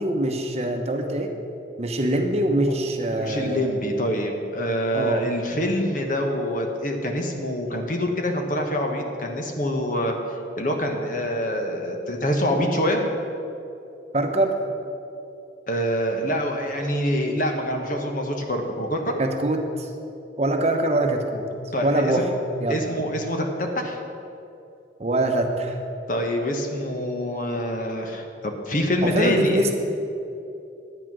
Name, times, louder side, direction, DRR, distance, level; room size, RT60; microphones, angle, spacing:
voice 1, 0.0-1.3 1.8-3.7 4.9-5.3 14.1-14.5 19.2-19.9 20.4-21.5 21.8-22.3 22.6-22.9 25.0-25.8 29.0-29.7, right 1 dB, 35° right, 4 dB, 0.9 m, -23 dB
voice 2, 3.1-10.1 10.6-13.0 15.7-19.1 21.7-22.1 22.7-24.0 26.1-29.7, equal, 45° left, 3 dB, 1.2 m, -25 dB
11.0 x 9.1 x 6.2 m, 2.7 s
head